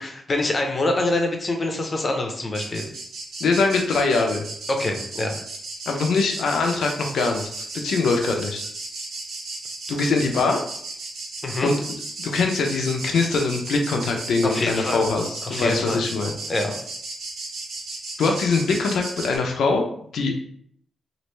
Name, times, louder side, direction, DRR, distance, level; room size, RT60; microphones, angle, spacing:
voice 1, 0.0-2.8 4.7-5.3 11.4-11.7 14.4-15.0 15.4-16.0 16.5-16.7, left 2 dB, 35° left, 3 dB, 0.6 m, -25 dB
sound 1, 2.5-19.4, right 3 dB, 80° right, 1.0 m, -35 dB
voice 2, 3.4-4.4 5.9-8.6 9.9-10.6 11.6-11.8 12.2-16.3 18.2-19.8 20.1-20.4, left 4 dB, 80° left, 2 dB, 0.4 m, -22 dB
3.1 x 2.5 x 3.1 m, 0.64 s
cardioid pair, 110°, 0 cm